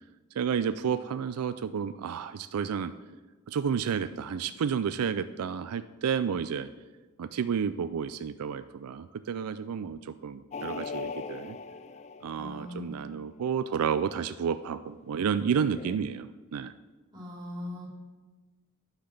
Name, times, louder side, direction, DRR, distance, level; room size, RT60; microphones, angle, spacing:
voice 1, 0.4-2.9 3.5-6.7 7.2-11.6 12.2-16.7, right 7 dB, 80° right, 12 dB, 0.4 m, -31 dB
sound 1, 10.5-13.1 15.3-16.0, left 5 dB, 30° left, 0.3 m, -40 dB
voice 2, 12.4-13.0 17.1-17.9, left 1 dB, 20° right, -5 dB, 3.3 m, -39 dB
10.0 x 5.8 x 6.6 m, 1.3 s
head